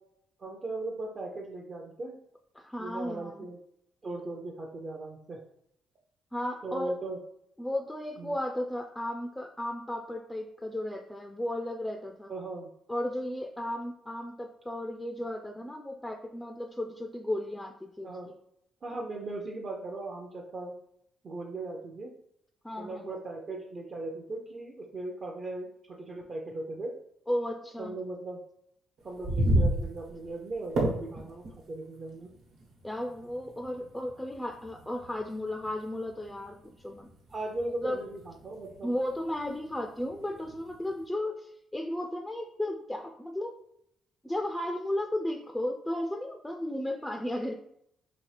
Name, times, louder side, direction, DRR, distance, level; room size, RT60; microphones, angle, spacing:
voice 1, 0.4-2.1 2.8-3.6 4.0-5.4 6.6-7.2 8.2-8.3 12.3-12.7 18.0-18.3 18.8-20.7 21.2-22.1 22.8-26.9 27.8-28.4 29.0-32.3 37.3-39.0, right 2 dB, 40° right, -1 dB, 0.6 m, -38 dB
voice 2, 2.6-3.5 6.3-7.0 7.6-12.3 12.9-18.1 22.6-23.1 27.3-27.9 32.8-37.1 37.8-38.0 38.8-43.5 44.2-47.5, left 1 dB, 10° left, 3 dB, 0.3 m, -34 dB
sound 1, 29.0-41.0, right 1 dB, 80° right, 1.2 m, -35 dB
4.0 x 2.7 x 3.3 m, 0.74 s
cardioid pair, 90°, 0 cm